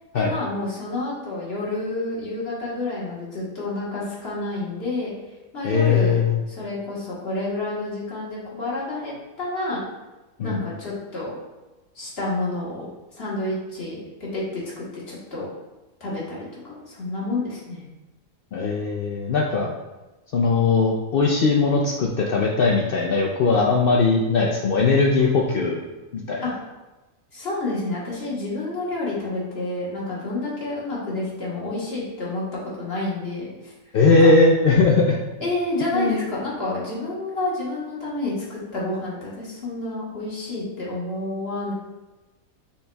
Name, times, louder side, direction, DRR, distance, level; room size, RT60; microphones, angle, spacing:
voice 1, 0.1-5.1 5.5-6.2 6.5-9.8 10.4-11.3 11.9-12.9 13.1-15.5 16.0-17.9 23.5-23.6 26.4-26.5 27.3-33.7 34.1-34.3 35.4-41.7, left 2 dB, 45° left, -7 dB, 1.6 m, -29 dB
voice 2, 5.6-6.4 10.4-10.6 18.5-19.7 20.3-25.8 26.1-26.5 33.9-35.2 35.9-36.2, left 4 dB, 80° left, -1 dB, 0.5 m, -19 dB
5.6 x 4.2 x 2.3 m, 1.1 s
omnidirectional pair, 1.5 m